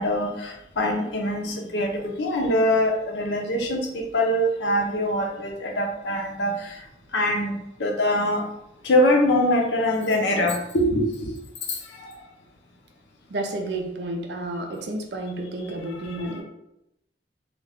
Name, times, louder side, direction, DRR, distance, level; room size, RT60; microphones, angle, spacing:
voice 1, 0.0-6.8 7.1-8.5 8.8-11.4 11.7-12.1 16.0-16.4, left 1 dB, 90° left, 1 dB, 0.6 m, -24 dB
voice 2, 13.3-16.4, right 1 dB, 75° right, 3 dB, 0.5 m, -31 dB
2.3 x 2.2 x 3.4 m, 0.85 s
head